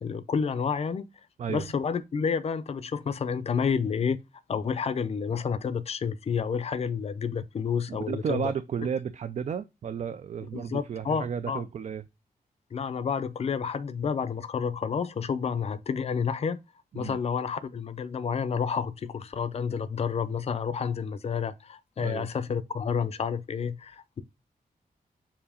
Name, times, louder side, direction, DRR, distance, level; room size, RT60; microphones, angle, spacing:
voice 1, 0.0-1.1 1.5-4.2 4.5-8.5 10.5-11.6 12.7-16.6 16.9-24.2, left 6 dB, 40° left, 0.5 m, -30 dB
voice 2, 7.9-12.0 16.9-17.2 22.0-22.3, right 7 dB, 50° right, 0.4 m, -33 dB
7.2 x 2.8 x 4.9 m
wide cardioid pair, 175°, 16 cm